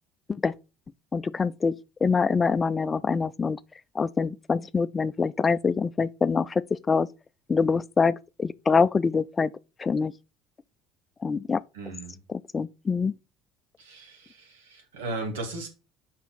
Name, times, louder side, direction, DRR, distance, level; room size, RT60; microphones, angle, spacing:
voice 1, 1.1-1.7 2.0-3.6 3.9-7.1 7.5-9.5 9.8-10.1 11.2-11.6 12.3-13.1, left 5 dB, 30° left, 0.4 m, -25 dB
voice 2, 11.7-12.2 13.8-15.7, right 2 dB, 80° right, 2.1 m, -36 dB
5.6 x 5.5 x 4.1 m
hypercardioid pair, 60°, 0 cm